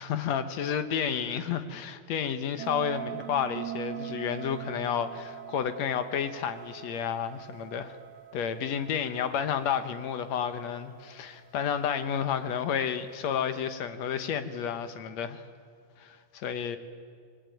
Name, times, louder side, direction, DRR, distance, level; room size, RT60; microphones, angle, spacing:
voice 1, 0.0-8.0 8.3-15.4 16.0-16.8, left 8 dB, 65° left, 10 dB, 2.2 m, -31 dB
sound 1, 2.6-11.9, right 12 dB, 55° right, 2.3 m, -42 dB
26.0 x 20.0 x 9.2 m, 2.1 s
omnidirectional pair, 3.6 m